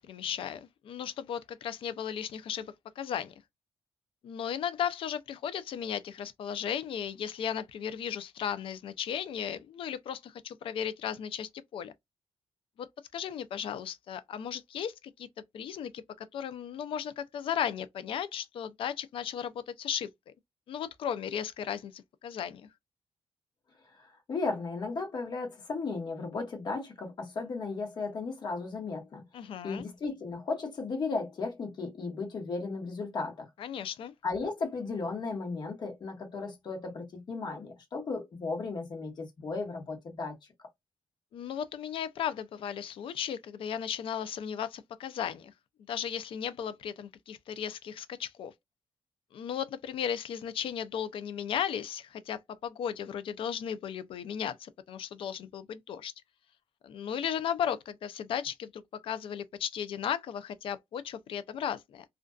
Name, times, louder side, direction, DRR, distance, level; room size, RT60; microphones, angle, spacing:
voice 1, 0.0-3.3 4.2-11.9 12.8-12.9 13.1-15.3 15.5-20.1 20.7-22.7 29.3-29.9 33.6-34.1 41.3-45.5 45.9-48.5 49.3-56.1 56.8-62.0, left 8 dB, 70° left, 0.4 m, -35 dB
voice 2, 24.0-29.2 29.6-33.5 34.2-40.4, left 4 dB, 50° left, 1.1 m, -35 dB
2.4 x 2.2 x 2.3 m
cardioid pair, 115°, 10 cm